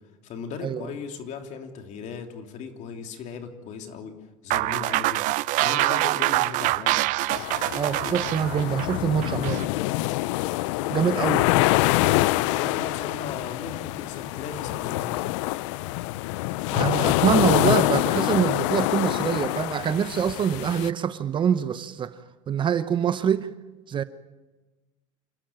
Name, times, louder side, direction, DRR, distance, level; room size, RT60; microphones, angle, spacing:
voice 1, 0.2-4.1 4.4-7.0 12.4-15.4, left 6 dB, 45° left, 3.3 m, -37 dB
sound 1, 4.5-9.7, right 19 dB, 50° right, 0.6 m, -25 dB
Felixstowe beach waves very close spray stereo, 7.3-20.9, left 19 dB, 70° left, 0.6 m, -25 dB
voice 2, 7.7-9.7 10.9-11.5 16.7-22.2 22.5-23.5 23.9-24.0, right 8 dB, 30° right, 0.9 m, -25 dB
28.5 x 13.0 x 8.9 m
supercardioid pair, 115°, 16 cm